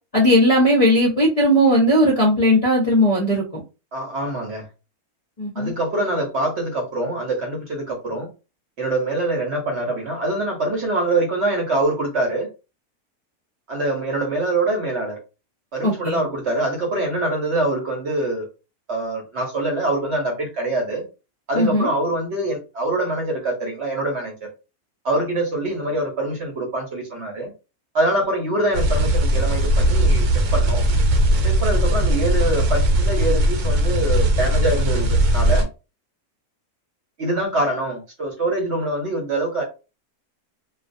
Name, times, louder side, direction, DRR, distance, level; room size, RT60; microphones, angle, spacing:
voice 1, 0.1-3.6 5.4-5.7 15.8-16.2 21.5-21.9, equal, 35° left, 0.6 m, -17 dB
voice 2, 3.9-4.7 5.5-8.3 8.8-12.5 13.7-15.2 15.7-18.5 18.9-21.0 21.5-24.5 25.0-27.5 27.9-30.2 30.5-30.8 31.4-35.7 37.2-39.6, right 2 dB, 55° right, 1.0 m, -24 dB
sound 1, 28.7-35.6, right 1 dB, 80° right, 1.1 m, -18 dB
2.4 x 2.3 x 2.5 m
omnidirectional pair, 1.6 m